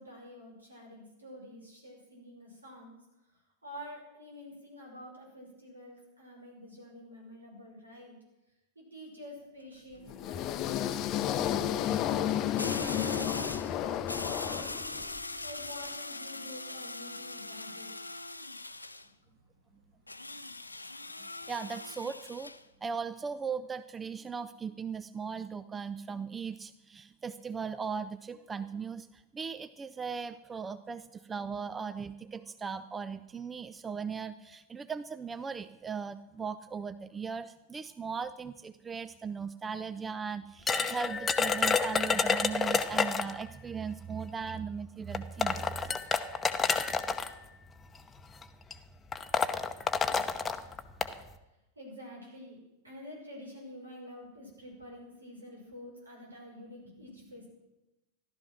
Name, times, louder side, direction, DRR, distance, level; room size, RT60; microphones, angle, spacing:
voice 1, 0.0-3.0 3.6-8.2 8.8-14.8 15.4-18.1 51.8-52.6 52.8-57.5, left 1 dB, 75° right, -1 dB, 5.8 m, -48 dB
sound 1, 9.4-9.8 12.6-13.7 14.1-19.1 20.1-22.6, left 2 dB, 85° left, 0.6 m, -41 dB
sound 2, 10.1-15.2, left 10 dB, 35° left, 0.7 m, -32 dB
voice 2, 21.5-22.5 22.8-46.0, right 6 dB, 15° right, 14 dB, 0.5 m, -38 dB
sound 3, 40.7-43.4 44.5-44.6 45.1-47.3 48.2-48.4 48.7-48.8 49.1-51.1, left 5 dB, 15° left, 0.9 m, -29 dB
14.5 x 12.0 x 6.1 m, 0.95 s
figure-of-eight pair, 90°, 0 cm